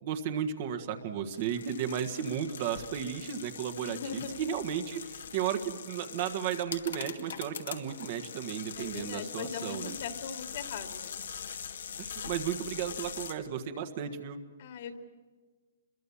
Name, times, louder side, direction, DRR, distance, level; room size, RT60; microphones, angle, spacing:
voice 1, 0.0-9.9 12.0-14.4, right 9 dB, 40° right, 8 dB, 1.6 m, -34 dB
sound 1, 1.3-13.3, left 7 dB, 80° left, 2.1 m, -42 dB
voice 2, 3.8-4.4 8.8-11.2 14.6-15.0, left 6 dB, 50° left, 6 dB, 2.5 m, -40 dB
26.0 x 22.5 x 7.2 m, 1.4 s
hypercardioid pair, 165°, 0 cm